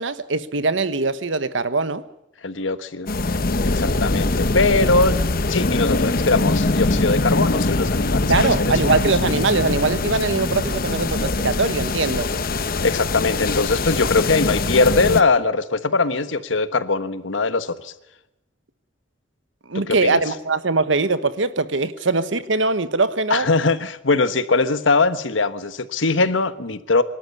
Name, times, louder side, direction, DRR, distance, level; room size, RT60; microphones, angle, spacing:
voice 1, 0.0-2.0 8.3-12.3 19.7-23.5, right 3 dB, 80° right, 1.2 m, -22 dB
voice 2, 2.4-3.1 3.6-5.2 5.5-9.1 12.8-17.9 19.7-20.2 23.3-27.0, left 3 dB, 85° left, 1.3 m, -21 dB
sound 1, 3.1-15.2, left 2 dB, 50° left, 1.0 m, -22 dB
24.5 x 12.5 x 9.6 m
head